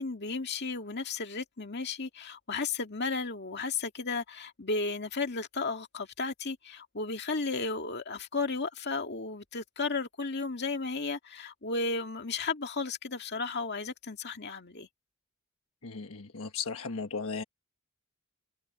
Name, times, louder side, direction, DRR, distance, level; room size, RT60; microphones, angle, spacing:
voice 1, 0.0-14.9, left 4 dB, 50° left, 2.1 m, -34 dB
voice 2, 15.8-17.4, left 5 dB, 65° left, 1.4 m, -36 dB
head